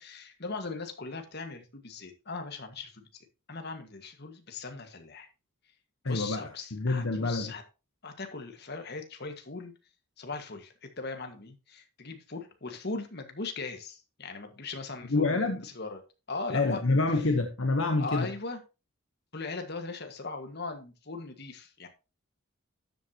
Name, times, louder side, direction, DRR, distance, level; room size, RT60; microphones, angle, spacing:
voice 1, 0.0-3.0 3.5-5.3 6.1-7.6 8.0-9.7 10.2-16.0 16.3-16.8 18.0-18.6 19.3-21.9, left 3 dB, 50° left, 1.7 m, -39 dB
voice 2, 6.0-7.5 15.1-15.6 16.5-18.3, left 3 dB, 70° left, 1.1 m, -27 dB
12.5 x 8.0 x 2.9 m
head